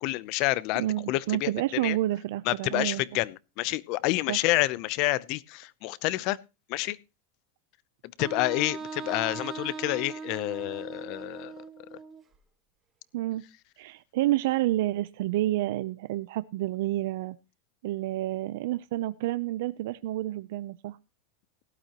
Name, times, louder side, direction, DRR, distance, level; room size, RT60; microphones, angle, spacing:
voice 1, 0.0-2.0 2.5-6.4 6.7-7.0 8.2-11.5 11.9-12.0, left 18 dB, 50° left, 0.7 m, -29 dB
voice 2, 0.8-3.0 4.3-4.4 13.1-13.4 13.8-17.4 17.8-21.0, right 15 dB, 70° right, 0.6 m, -29 dB
Wind instrument woodwind instrument, 8.2-12.2, right 5 dB, 20° right, 2.0 m, -39 dB
17.5 x 12.0 x 3.0 m
supercardioid pair, 145°, 0 cm